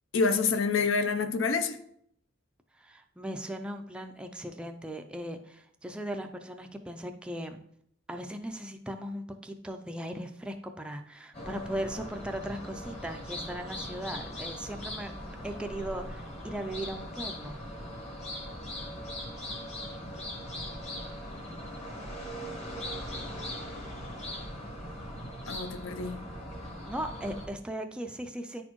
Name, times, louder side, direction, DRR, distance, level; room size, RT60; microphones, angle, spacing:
voice 1, 0.1-1.8 25.5-26.2, left 4 dB, 70° left, 10 dB, 0.5 m, -27 dB
voice 2, 2.7-7.6 8.1-15.1 15.4-17.6 26.8-28.6, right 1 dB, 5° right, 4 dB, 0.3 m, -38 dB
sound 1, 11.3-27.5, equal, 35° left, 1.2 m, -40 dB
9.7 x 4.2 x 3.0 m, 0.70 s
head